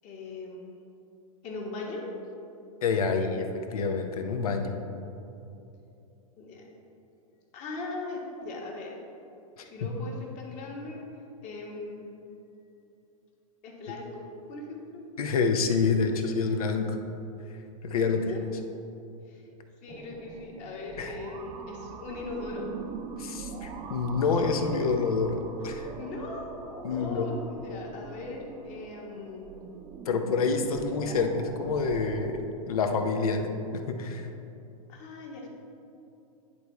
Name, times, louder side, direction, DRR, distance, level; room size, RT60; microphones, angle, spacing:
voice 1, 0.0-0.7 1.4-2.1 6.4-6.7 7.5-9.0 9.6-11.0 11.4-12.1 13.6-15.0 17.9-18.5 19.3-19.4 19.8-22.7 26.0-29.5 30.8-31.1 34.9-35.5, left 3 dB, 40° left, -1 dB, 1.4 m, -39 dB
voice 2, 2.8-4.7 9.6-9.9 15.2-17.0 17.8-18.4 21.0-21.2 23.2-25.9 26.8-27.3 30.1-32.4 32.7-34.3, left 4 dB, 75° left, 5 dB, 0.8 m, -27 dB
sound 1, 19.9-32.4, right 5 dB, 25° right, 0.5 m, -43 dB
10.0 x 3.5 x 4.1 m, 2.8 s
hypercardioid pair, 115°, 19 cm